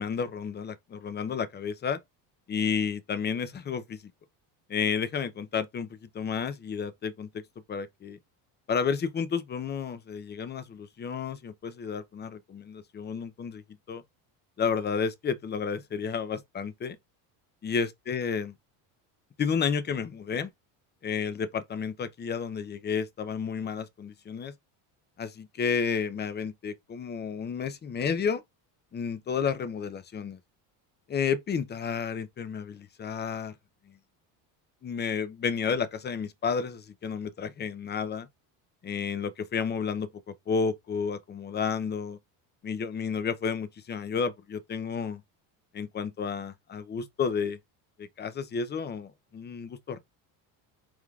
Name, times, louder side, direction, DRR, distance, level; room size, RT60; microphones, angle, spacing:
voice 1, 0.0-2.0 2.5-4.0 4.7-5.9 6.1-7.4 7.7-8.2 8.7-13.6 13.9-14.0 14.6-17.0 17.6-18.5 19.4-20.5 21.0-24.5 25.2-28.4 28.9-30.4 31.1-33.5 34.8-38.3 38.8-40.1 40.5-42.2 42.6-45.2 45.7-47.6 48.0-50.0, left 6 dB, 25° left, 0.6 m, -31 dB
4.7 x 3.6 x 2.3 m
supercardioid pair, 110°, 45 cm